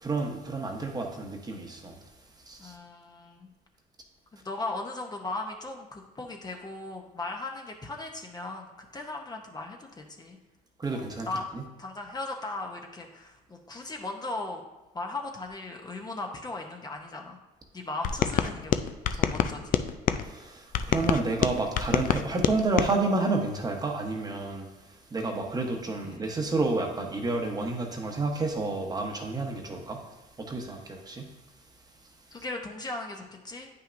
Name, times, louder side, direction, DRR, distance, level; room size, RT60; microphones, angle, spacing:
voice 1, 0.0-2.0 2.5-2.7 10.8-11.3 11.5-11.6 20.2-24.7 25.1-30.0 30.4-31.3, right 3 dB, 25° right, 2 dB, 1.0 m, -30 dB
voice 2, 2.6-3.5 4.3-10.4 10.9-11.5 11.8-14.6 14.9-17.4 17.7-18.7 19.1-19.8 26.0-26.3 32.3-33.7, left 2 dB, 25° left, 2 dB, 0.7 m, -37 dB
sound 1, 18.0-20.2 20.7-22.9, left 9 dB, 55° left, 0.4 m, -27 dB
8.9 x 5.6 x 2.6 m, 1.1 s
cardioid pair, 110°, 17 cm